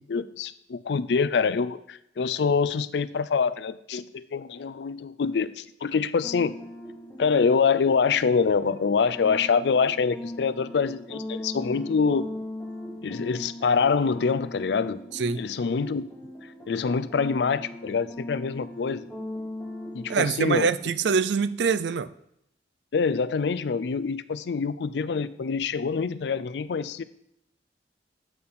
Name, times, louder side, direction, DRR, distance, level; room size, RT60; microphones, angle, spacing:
voice 1, 0.0-6.5 7.2-12.3 13.0-15.0 15.4-16.0 16.7-19.1 19.9-20.7 22.9-27.0, left 5 dB, 80° left, 15 dB, 0.4 m, -25 dB
sound 1, 6.2-20.3, left 1 dB, 10° left, 1.0 m, -39 dB
voice 2, 20.1-22.1, right 5 dB, 85° right, 15 dB, 0.4 m, -24 dB
8.2 x 4.3 x 5.5 m, 0.76 s
head